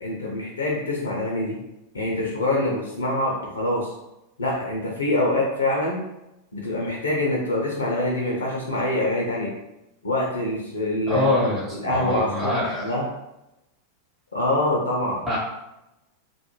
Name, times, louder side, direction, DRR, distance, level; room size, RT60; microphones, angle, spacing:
voice 1, 0.0-1.6 1.9-3.9 4.4-6.0 6.5-9.5 10.0-11.3 11.7-13.1 14.3-15.2, left 1 dB, 75° left, -1 dB, 0.5 m, -25 dB
voice 2, 11.1-12.8 15.3-15.4, left 1 dB, 15° right, -8 dB, 0.8 m, -24 dB
2.3 x 2.1 x 3.0 m, 0.92 s
figure-of-eight pair, 90°, 0 cm